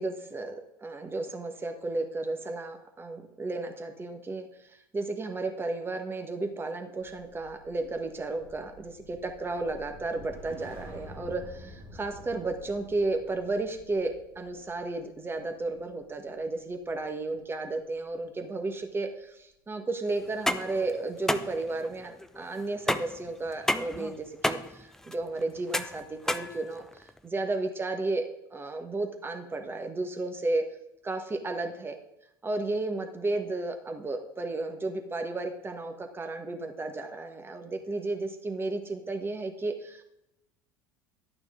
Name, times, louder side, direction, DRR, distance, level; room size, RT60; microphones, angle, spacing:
voice 1, 0.0-4.5 4.9-28.3 28.5-30.7 31.0-32.0 32.4-40.0, right 2 dB, 20° right, 5 dB, 1.5 m, -33 dB
sound 1, 7.0-17.4 17.7-18.0, left 1 dB, 55° right, 2.6 m, -50 dB
sound 2, 20.2-27.2, left 1 dB, 5° left, 0.6 m, -32 dB
11.5 x 8.8 x 3.8 m, 0.86 s
hypercardioid pair, 70°, 11 cm